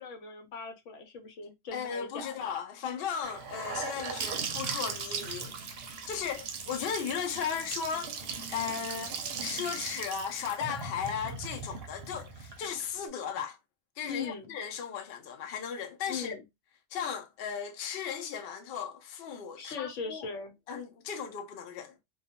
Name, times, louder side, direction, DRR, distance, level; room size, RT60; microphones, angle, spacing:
voice 1, 0.0-2.4 14.0-14.5 16.1-16.4 19.6-20.5, left 5 dB, 80° left, 1.0 m, -40 dB
voice 2, 1.7-5.6 6.1-13.6 14.0-16.4 16.9-20.3 20.7-21.9, left 7 dB, 65° left, 0.7 m, -36 dB
Gurgling / Sink (filling or washing) / Bathtub (filling or washing), 3.2-13.1, right 5 dB, 65° right, 0.7 m, -38 dB
2.3 x 2.2 x 2.7 m
omnidirectional pair, 1.2 m